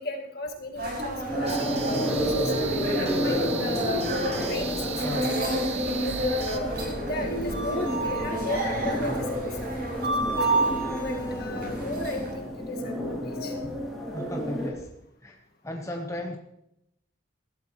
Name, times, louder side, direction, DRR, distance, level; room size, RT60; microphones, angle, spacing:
voice 1, 0.0-2.5 2.9-4.0 4.5-5.6 6.0-6.8 7.1-10.6 11.0-13.7, left 2 dB, 55° left, 2 dB, 1.9 m, -35 dB
sound 1, 0.7-12.3, right 1 dB, 55° right, 6.7 m, -30 dB
sound 2, 1.3-14.7, equal, ahead, 3.1 m, -31 dB
sound 3, 1.5-6.6, right 7 dB, 35° right, 1.0 m, -37 dB
voice 2, 5.0-5.4 6.2-6.5 14.1-14.9 15.2-15.4 15.6-16.4, left 1 dB, 15° left, 2 dB, 1.0 m, -36 dB
19.0 x 12.5 x 3.1 m, 0.79 s
head